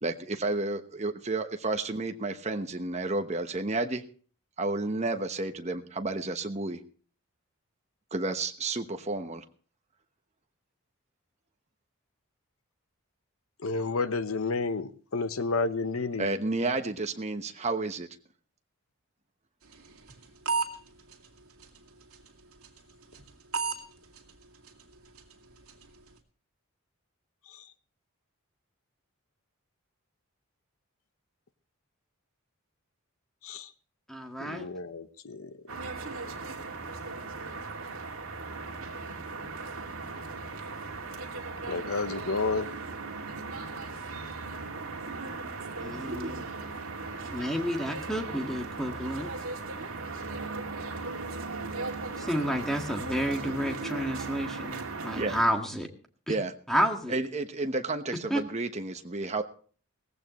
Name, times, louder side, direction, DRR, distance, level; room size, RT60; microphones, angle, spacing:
voice 1, 0.0-4.0 4.6-6.8 8.1-9.4 16.2-18.1 55.2-55.4 56.3-56.5 57.1-59.4, right 2 dB, 30° right, 7 dB, 1.0 m, -31 dB
voice 2, 13.6-16.3 33.4-33.7 34.4-35.5 41.7-42.7, left 3 dB, 70° left, 12 dB, 0.9 m, -31 dB
sound 1, 19.7-20.7 21.1-21.3 21.6-21.8 22.1-22.3 22.6-22.8 23.1-23.3 23.5-23.8 24.2-24.3 24.7-24.8 25.2-25.3 25.7-25.9, right 5 dB, 80° right, 2.1 m, -30 dB
voice 3, 34.1-34.7 45.8-46.4 47.3-49.3 52.2-55.9 56.3-56.4 56.7-57.2 58.3-58.4, equal, ahead, 3 dB, 1.7 m, -30 dB
sound 2, 35.7-55.4, right 3 dB, 65° right, 2.4 m, -37 dB
18.0 x 15.5 x 3.1 m, 0.42 s
head